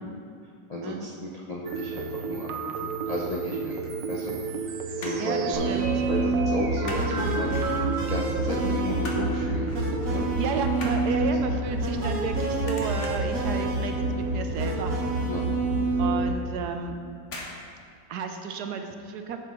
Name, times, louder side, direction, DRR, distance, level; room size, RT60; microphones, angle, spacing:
voice 1, 0.7-3.8 4.1-4.4 5.0-5.7 6.1-9.7 10.1-10.3 15.3-15.4, left 1 dB, 65° left, -3 dB, 0.3 m, -33 dB
sound 1, 1.7-11.0, right 5 dB, 90° right, 1.4 m, -33 dB
sound 2, 3.8-4.6 4.9-5.4 5.7-5.9 6.2-7.1 7.5-8.1 8.5-9.3 9.7-9.9 10.2-12.3 12.6-13.4 13.8-14.1 14.4-14.5 14.9-15.0 15.4-15.5 16.3-16.6 17.2-17.6 17.9-18.0, left 2 dB, 45° left, 1.3 m, -41 dB
voice 2, 5.2-5.9 10.4-15.0 16.0-17.0 18.1-19.4, right 5 dB, 70° right, 5 dB, 1.2 m, -32 dB
sound 3, 5.5-16.3, right 2 dB, 55° right, 1.6 m, -27 dB
11.0 x 6.7 x 3.8 m, 2.2 s
omnidirectional pair, 1.9 m